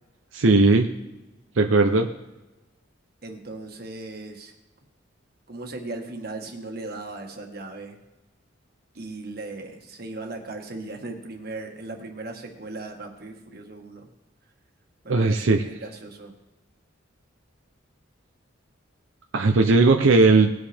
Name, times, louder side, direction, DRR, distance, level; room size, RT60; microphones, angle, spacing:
voice 1, 0.3-0.9 1.6-2.1 15.1-15.6 19.3-20.5, right 3 dB, 85° right, 5 dB, 0.7 m, -17 dB
voice 2, 3.2-4.5 5.5-8.0 9.0-14.1 15.0-16.3, right 2 dB, 50° right, 3 dB, 1.6 m, -37 dB
19.5 x 7.9 x 3.5 m, 1.1 s
head